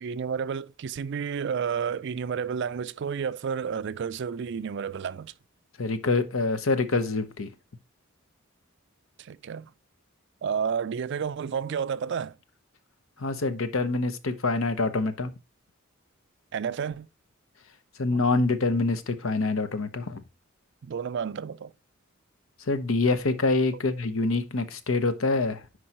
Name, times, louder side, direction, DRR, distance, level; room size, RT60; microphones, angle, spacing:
voice 1, 0.0-5.3 9.2-9.7 10.4-12.4 16.5-17.1 18.1-18.2 20.8-21.7, right 7 dB, 60° right, 0.4 m, -31 dB
voice 2, 5.8-7.5 13.2-15.3 18.0-20.2 22.6-25.7, left 3 dB, 75° left, 0.9 m, -26 dB
9.9 x 4.7 x 2.9 m
head